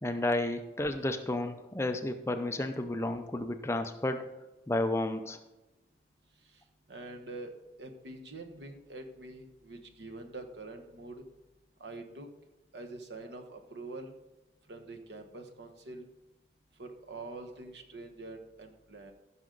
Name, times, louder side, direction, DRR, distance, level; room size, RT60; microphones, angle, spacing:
voice 1, 0.0-4.3 4.7-5.4, left 1 dB, 15° left, 7 dB, 0.5 m, -32 dB
voice 2, 6.9-7.5 7.8-11.2 11.8-12.3 12.7-14.1 14.7-16.1 16.8-19.1, right 2 dB, 75° right, 4 dB, 1.2 m, -45 dB
15.5 x 6.1 x 3.9 m, 1.0 s
head